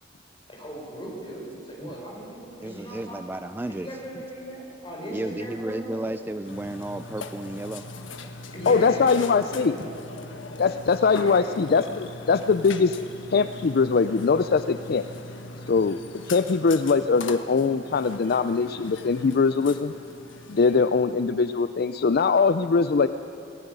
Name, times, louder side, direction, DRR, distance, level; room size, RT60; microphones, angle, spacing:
voice 1, 0.5-6.0 8.5-10.0 11.2-11.5, right 1 dB, 25° left, -2 dB, 5.8 m, -38 dB
voice 2, 2.6-3.9 5.1-7.9, right 1 dB, 10° right, 10 dB, 0.3 m, -33 dB
Burping eructation, 6.4-20.9, left 2 dB, 85° left, 1.3 m, -40 dB
voice 3, 8.7-9.8 10.6-13.0 13.3-15.0 15.7-16.0 16.3-19.9 20.5-23.1, left 4 dB, 55° left, 11 dB, 0.4 m, -22 dB
17.0 x 16.5 x 9.3 m, 2.9 s
head